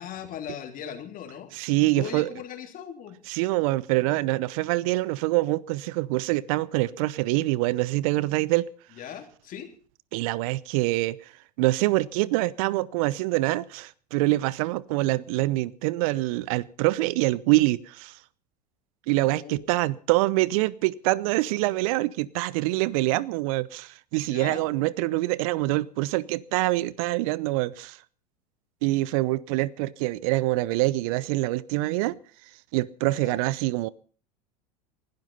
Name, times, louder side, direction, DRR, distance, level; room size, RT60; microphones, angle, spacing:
voice 1, 0.0-1.5 1.9-3.2 9.0-9.7 19.3-19.7 24.2-24.6 33.1-33.4, left 9 dB, 40° left, 3.4 m, -39 dB
voice 2, 1.5-2.3 3.3-8.7 10.1-11.3 11.6-18.2 19.1-28.0 28.8-32.2 32.7-33.9, right 19 dB, 60° right, 0.7 m, -25 dB
20.0 x 12.0 x 5.6 m
hypercardioid pair, 85°, 20 cm